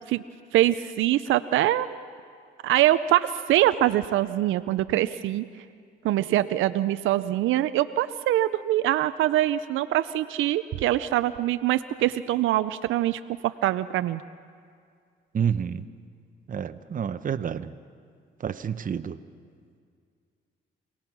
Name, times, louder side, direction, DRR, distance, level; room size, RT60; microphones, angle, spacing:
voice 1, 0.5-1.9 2.6-5.4 6.0-14.2, right 14 dB, 85° right, 12 dB, 0.5 m, -24 dB
voice 2, 15.3-15.9 16.5-17.7 18.4-19.2, right 8 dB, 45° right, 11 dB, 0.8 m, -29 dB
26.5 x 18.0 x 6.0 m, 2.2 s
cardioid pair, 90°, 20 cm